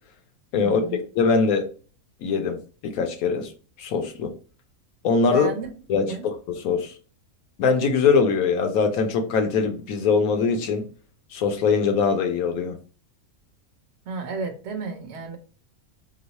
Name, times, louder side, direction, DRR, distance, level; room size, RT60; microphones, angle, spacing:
voice 1, 0.6-1.0 5.3-6.3 14.1-15.4, right 4 dB, 60° right, 0.9 m, -33 dB
voice 2, 1.2-1.7 2.2-2.6 2.8-3.5 3.8-4.3 5.0-5.5 5.9-6.9 7.6-10.9 11.3-12.7, left 5 dB, 75° left, 1.1 m, -22 dB
3.0 x 2.0 x 4.0 m
omnidirectional pair, 1.5 m